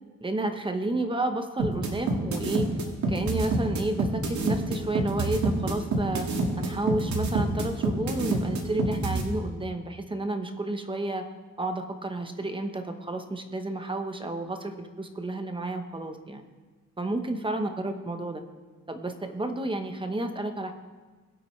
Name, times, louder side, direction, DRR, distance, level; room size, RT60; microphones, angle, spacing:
voice 1, 0.2-2.8 3.1-6.3 6.6-11.2 11.6-16.4 17.0-18.4 18.9-20.7, right 2 dB, 15° right, 6 dB, 0.9 m, -31 dB
sound 1, 1.6-9.2, right 2 dB, 65° right, 1.9 m, -26 dB
21.0 x 8.3 x 3.2 m, 1.3 s
cardioid pair, 140°, 31 cm